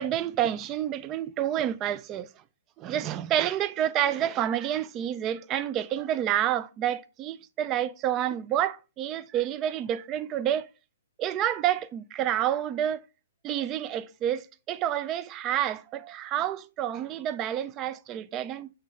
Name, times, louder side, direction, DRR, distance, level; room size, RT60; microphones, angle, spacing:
voice 1, 0.0-2.3 2.8-10.7 11.2-13.0 13.4-18.7, right 11 dB, 25° right, 0.4 m, -29 dB
8.0 x 3.3 x 3.7 m
hypercardioid pair, 130°, 0 cm